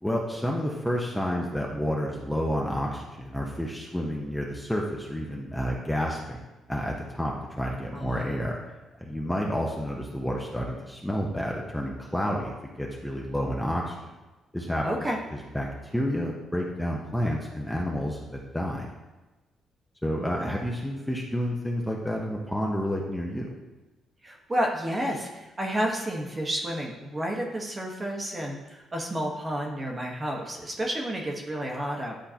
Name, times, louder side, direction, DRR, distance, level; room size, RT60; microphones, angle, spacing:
voice 1, 0.0-8.6 9.0-14.0 14.5-15.1 15.3-15.7 15.9-18.9 20.0-23.6, equal, 5° left, -2 dB, 0.9 m, -30 dB
voice 2, 7.9-8.3 14.8-15.2 20.4-20.5 24.2-32.2, equal, 25° right, 0 dB, 1.3 m, -31 dB
10.5 x 3.8 x 2.9 m, 1.1 s
cardioid pair, 90°, 0 cm